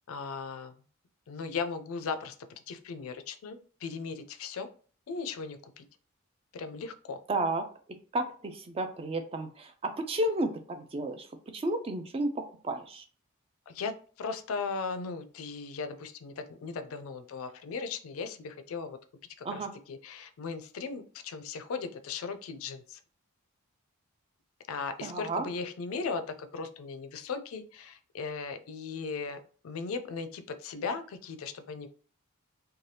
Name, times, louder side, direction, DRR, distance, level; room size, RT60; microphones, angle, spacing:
voice 1, 0.1-0.7 1.3-4.7 5.1-5.9 6.5-7.2 13.7-13.9 14.2-19.0 19.4-19.6 19.9-23.0 24.7-29.4 29.6-31.9, left 5 dB, 70° left, 10 dB, 0.4 m, -37 dB
voice 2, 7.3-7.7 8.1-11.3 11.5-13.0 19.4-19.7 25.0-25.5, right 1 dB, 25° right, 7 dB, 0.3 m, -32 dB
2.7 x 2.2 x 3.2 m, 0.41 s
head